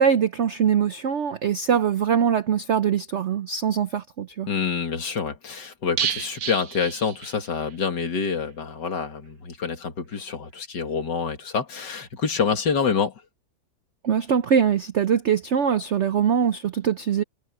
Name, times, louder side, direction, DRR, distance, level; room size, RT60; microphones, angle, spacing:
voice 1, 0.0-4.5 14.0-17.2, right 7 dB, 80° right, 0.6 m, -22 dB
voice 2, 4.5-13.1, left 6 dB, 65° left, 2.7 m, -27 dB
sound 1, 6.0-7.8 8.0-8.1 8.5-8.6, right 8 dB, 55° right, 1.4 m, -31 dB
omnidirectional pair, 2.1 m